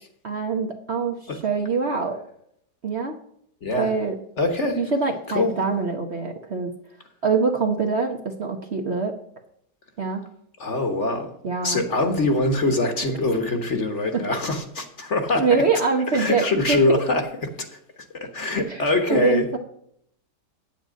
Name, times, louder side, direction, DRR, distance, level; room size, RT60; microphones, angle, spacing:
voice 1, 0.2-2.2 2.8-3.1 3.8-4.2 4.8-6.7 7.2-9.2 10.0-10.3 11.4-11.8 14.1-14.2 15.4-17.0 18.7-18.8 19.1-19.6, right 4 dB, 45° right, 3 dB, 1.0 m, -24 dB
voice 2, 3.6-3.9 4.4-4.8 5.3-5.5 10.6-11.3 11.6-15.6 16.1-17.7 18.1-19.5, left 2 dB, 45° left, 6 dB, 1.4 m, -23 dB
9.2 x 9.1 x 5.1 m, 0.69 s
omnidirectional pair, 1.9 m